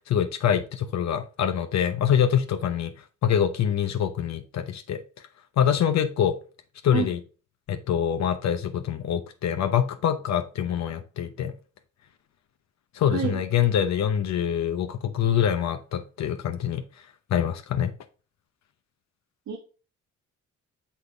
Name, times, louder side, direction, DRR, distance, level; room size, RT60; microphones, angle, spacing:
voice 1, 0.1-2.9 3.2-5.0 5.6-6.3 6.8-7.2 7.7-11.5 12.9-16.8 17.3-17.9, left 9 dB, 65° left, 7 dB, 0.8 m, -25 dB
voice 2, 13.1-13.4 19.5-19.6, right 7 dB, 70° right, 2 dB, 1.3 m, -28 dB
6.4 x 5.7 x 3.4 m, 0.36 s
cardioid pair, 90°, 30 cm